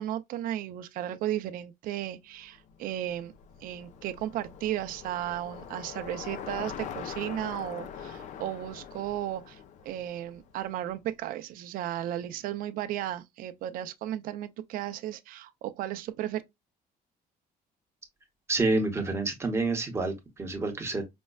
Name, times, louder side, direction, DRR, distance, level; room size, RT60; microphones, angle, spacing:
voice 1, 0.0-3.3 3.6-16.4, right 12 dB, 65° right, 0.5 m, -34 dB
Bicycle, 2.6-10.9, left 8 dB, 50° left, 0.4 m, -43 dB
voice 2, 18.5-21.1, right 3 dB, 15° right, 0.8 m, -28 dB
5.2 x 2.1 x 2.2 m
cardioid pair, 160°, 16 cm